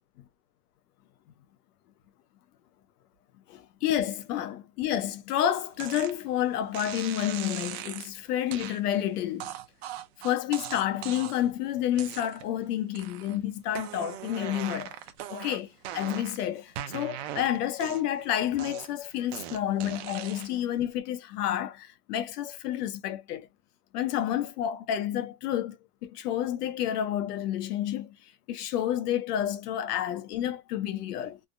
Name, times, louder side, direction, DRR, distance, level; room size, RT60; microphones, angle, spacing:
voice 1, 3.5-9.5 10.2-15.0 15.3-23.5 23.9-25.8 26.0-28.2 28.5-31.4, left 11 dB, 90° left, 0.8 m, -30 dB
sound 1, 5.8-6.1 6.7-8.1 8.5-8.8 9.4-11.5 11.9-12.6 12.9-13.4 13.7-16.4 16.8-18.2 18.6-20.6, right 11 dB, 45° right, 0.6 m, -39 dB
3.4 x 2.1 x 2.5 m
supercardioid pair, 175°, 45 cm